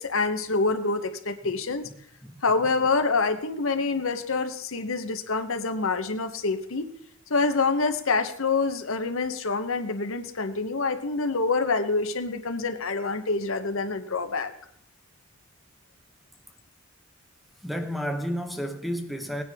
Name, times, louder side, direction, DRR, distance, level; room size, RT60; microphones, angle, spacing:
voice 1, 0.0-1.9 2.4-6.9 7.3-14.5, left 3 dB, 75° left, 1.0 m, -26 dB
voice 2, 17.6-19.4, equal, ahead, 0.8 m, -31 dB
18.5 x 9.6 x 3.5 m
head